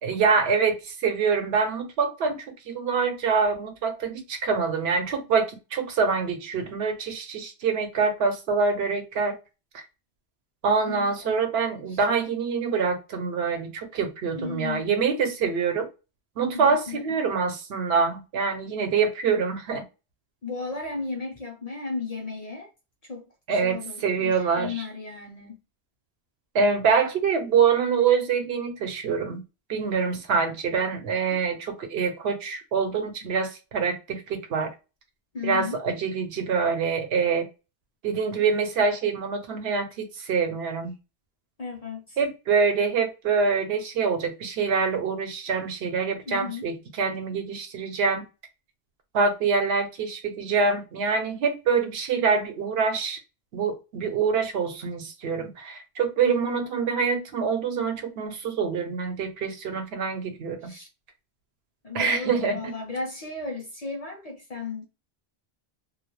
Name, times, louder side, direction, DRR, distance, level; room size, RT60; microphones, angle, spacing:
voice 1, 0.0-9.3 10.6-15.9 16.4-19.8 23.5-24.8 26.5-29.4 29.7-34.7 35.4-37.5 38.0-40.9 42.2-48.2 49.1-53.2 53.5-60.7 61.9-62.7, right 5 dB, 75° right, 0.9 m, -25 dB
voice 2, 10.9-11.4 11.9-12.0 14.3-15.1 16.5-17.0 20.4-22.7 23.1-25.6 31.3-31.4 35.3-35.8 41.6-42.2 46.3-46.7 56.2-56.6 60.6-60.9 61.8-64.8, left 4 dB, 45° left, 0.5 m, -35 dB
2.2 x 2.1 x 2.9 m
omnidirectional pair, 1.1 m